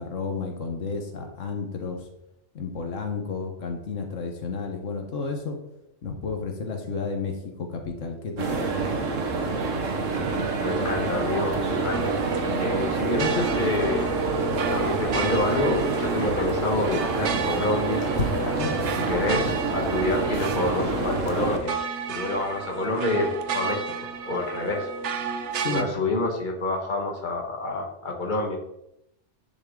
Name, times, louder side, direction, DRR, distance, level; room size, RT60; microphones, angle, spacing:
voice 1, 0.0-2.1 2.5-5.6 6.0-8.7 18.5-18.9 25.6-25.9, left 4 dB, 85° left, 4 dB, 1.5 m, -32 dB
sound 1, 8.4-21.6, right 3 dB, 90° right, 1.6 m, -27 dB
voice 2, 10.6-12.1 12.6-14.1 14.7-18.1 19.1-21.8 22.1-23.9 24.2-24.9 25.6-28.6, left 2 dB, 40° left, 1 dB, 1.7 m, -27 dB
sound 2, 11.9-25.8, right 5 dB, 70° right, 1.1 m, -32 dB
Wind, 13.6-20.1, left 2 dB, 65° left, 1.8 m, -37 dB
10.5 x 6.3 x 3.7 m, 0.82 s
omnidirectional pair, 1.3 m